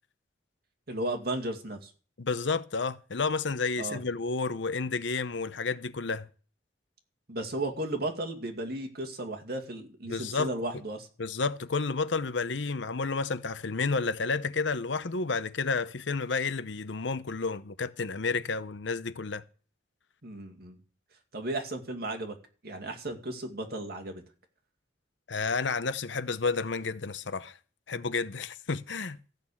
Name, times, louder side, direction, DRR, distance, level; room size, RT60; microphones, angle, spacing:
voice 1, 0.9-1.9 3.8-4.0 7.3-11.1 20.2-20.8 21.3-22.4 22.6-24.2, right 1 dB, 55° right, 2.3 m, -34 dB
voice 2, 2.2-6.3 10.1-10.5 11.2-19.4 25.3-27.5 27.9-29.2, left 4 dB, 75° left, 0.8 m, -31 dB
14.5 x 6.7 x 8.6 m
head